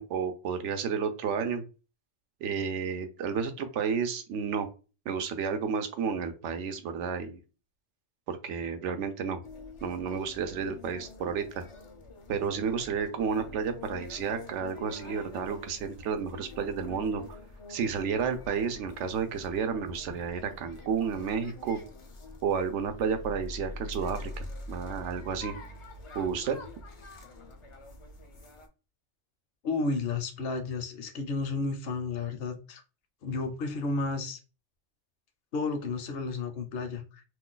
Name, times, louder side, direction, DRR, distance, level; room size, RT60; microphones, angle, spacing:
voice 1, 0.0-1.6 2.4-4.7 5.1-7.4 8.3-9.4 9.8-11.6 12.3-17.4 17.7-21.8 22.4-25.6 26.1-26.6, right 6 dB, 80° right, 8 dB, 0.9 m, -31 dB
sound 1, 9.4-28.7, left 2 dB, 45° left, 0.4 m, -45 dB
voice 2, 29.6-32.8 33.2-34.4 35.5-37.0, left 3 dB, 60° left, 7 dB, 0.8 m, -32 dB
2.5 x 2.2 x 3.7 m, 0.32 s
omnidirectional pair, 1.2 m